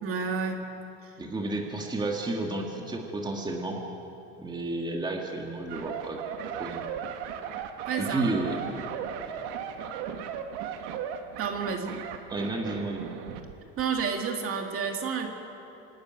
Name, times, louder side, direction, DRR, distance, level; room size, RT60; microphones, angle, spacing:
voice 1, 0.0-0.7 1.0-1.1 7.9-8.3 8.6-8.8 11.4-12.0 13.8-15.3, right 5 dB, 45° right, 3 dB, 2.3 m, -30 dB
voice 2, 1.2-3.8 4.4-6.2 6.6-6.8 8.0-8.6 12.3-13.1, right 2 dB, 15° right, 1 dB, 2.0 m, -31 dB
sound 1, 5.7-13.5 13.8-14.0, right 8 dB, 85° right, 1.6 m, -36 dB
26.5 x 11.5 x 9.4 m, 2.8 s
cardioid pair, 140°, 32 cm